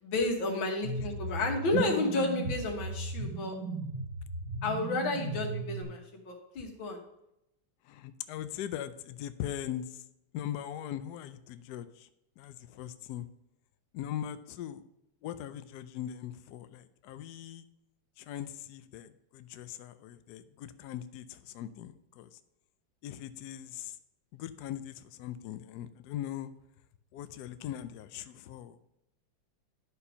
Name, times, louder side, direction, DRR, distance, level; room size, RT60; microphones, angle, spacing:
voice 1, 0.0-3.6 4.6-7.0, left 2 dB, 90° left, 2 dB, 2.2 m, -31 dB
sound 1, 0.8-5.8, right 3 dB, 40° right, 3.2 m, -36 dB
voice 2, 7.8-10.0 10.3-12.1 12.4-13.2 13.9-14.8 15.2-17.6 18.2-22.4 23.0-24.0 24.3-26.5 27.1-28.8, left 11 dB, 70° left, 11 dB, 1.0 m, -40 dB
11.5 x 4.3 x 5.5 m, 0.84 s
omnidirectional pair, 2.1 m